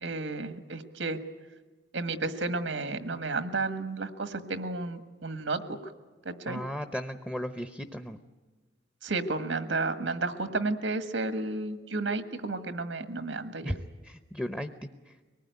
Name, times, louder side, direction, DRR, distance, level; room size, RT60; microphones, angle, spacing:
voice 1, 0.0-1.2 1.9-5.6 6.2-6.6 9.0-13.7, right 3 dB, 90° right, 10 dB, 1.6 m, -32 dB
voice 2, 6.5-8.2 13.6-14.7 15.1-15.2, equal, 5° left, 9 dB, 0.7 m, -36 dB
23.5 x 19.5 x 9.4 m, 1.3 s
head